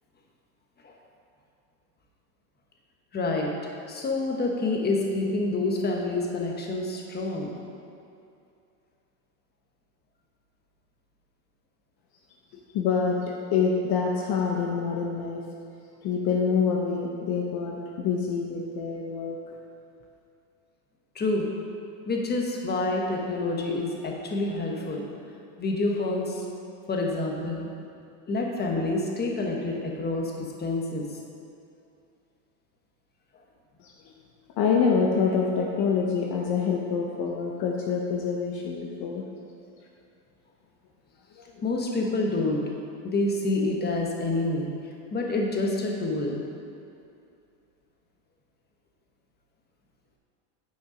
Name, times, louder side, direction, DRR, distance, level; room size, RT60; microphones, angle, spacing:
voice 1, 3.1-3.5 3.9-7.5 21.1-21.5 22.1-25.1 25.6-26.4 26.9-27.7 28.3-30.3 30.6-31.1 41.6-42.6 43.0-44.7 45.1-46.4, left 2 dB, 20° left, 0 dB, 1.2 m, -27 dB
voice 2, 12.5-15.4 16.0-19.5 33.8-34.1 34.6-39.2 41.4-41.5, left 5 dB, 50° left, 0 dB, 0.9 m, -26 dB
9.2 x 5.2 x 5.0 m, 2.5 s
supercardioid pair, 110°, 49 cm